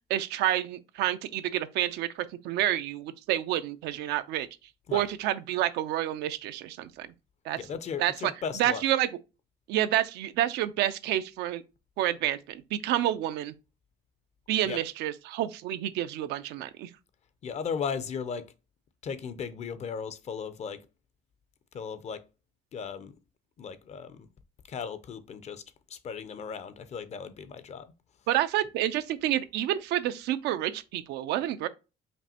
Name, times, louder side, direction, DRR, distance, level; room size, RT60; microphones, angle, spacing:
voice 1, 0.1-4.5 4.9-7.1 7.5-7.6 8.0-8.3 8.6-9.1 9.7-11.6 12.0-13.5 14.5-16.9 28.3-31.7, right 13 dB, 85° right, 0.4 m, -29 dB
voice 2, 7.6-8.8 14.6-14.8 17.4-18.5 19.0-20.9 21.7-22.2 22.7-23.1 23.6-24.3 24.7-25.6 25.9-27.9, left 6 dB, 40° left, 0.5 m, -36 dB
5.2 x 2.5 x 2.8 m
cardioid pair, 110°, 17 cm